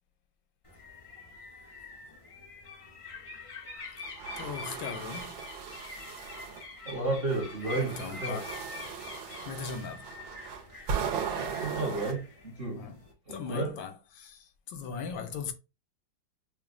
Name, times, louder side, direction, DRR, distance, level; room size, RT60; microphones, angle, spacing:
sound 1, 0.6-13.1, left 3 dB, 55° left, 0.3 m, -45 dB
sound 2, 4.0-6.6 7.3-12.1, right 7 dB, 80° right, 1.5 m, -37 dB
voice 1, 4.4-5.3 7.8-8.5 9.5-10.1 12.7-13.0 13.3-15.5, left 5 dB, 80° left, 1.3 m, -39 dB
voice 2, 6.8-7.9 8.2-8.4 11.6-12.8 13.3-13.8, right 2 dB, 40° right, 0.9 m, -32 dB
6.0 x 2.1 x 2.4 m
omnidirectional pair, 2.1 m